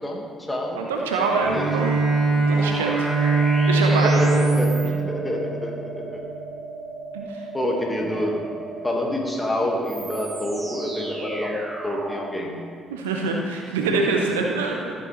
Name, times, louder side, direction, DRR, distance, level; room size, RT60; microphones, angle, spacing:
voice 1, 0.0-0.8 1.5-1.7 3.4-3.5 3.9-6.2 7.5-8.4 8.8-12.6, left 1 dB, 10° left, 0 dB, 1.8 m, -27 dB
voice 2, 0.7-2.0 2.5-3.1 3.7-4.1 7.1-7.4 12.9-14.9, right 4 dB, 80° right, 1 dB, 0.8 m, -25 dB
Bowed string instrument, 1.4-6.3, right 3 dB, 55° right, 2.7 m, -22 dB
sound 1, 2.4-12.3, right 2 dB, 30° right, 1.7 m, -35 dB
13.0 x 7.3 x 3.3 m, 2.2 s
figure-of-eight pair, 45°, 0 cm